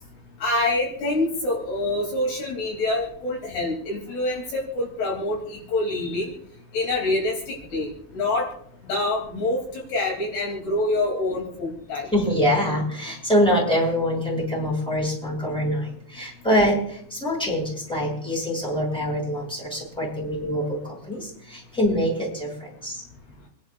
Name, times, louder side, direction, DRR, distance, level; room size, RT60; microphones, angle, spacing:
voice 1, 0.4-6.3 6.7-8.5 8.8-12.1, left 2 dB, 65° left, -1 dB, 4.8 m, -26 dB
voice 2, 12.1-23.0, equal, ahead, -3 dB, 6.7 m, -24 dB
28.5 x 12.0 x 2.5 m, 0.64 s
omnidirectional pair, 5.2 m